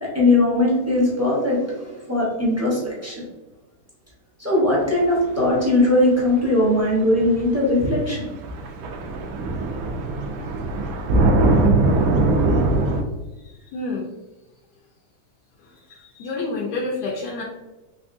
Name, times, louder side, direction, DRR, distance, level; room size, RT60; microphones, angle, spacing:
voice 1, 0.0-3.1 4.4-8.3, left 1 dB, 15° right, -6 dB, 0.5 m, -20 dB
sound 1, 6.9-7.0 8.1-8.2 8.4-13.0, right 2 dB, 70° right, 0.9 m, -20 dB
voice 2, 13.4-14.1 15.6-17.4, left 3 dB, 75° left, -2 dB, 1.1 m, -29 dB
3.6 x 3.3 x 2.5 m, 1.1 s
omnidirectional pair, 1.8 m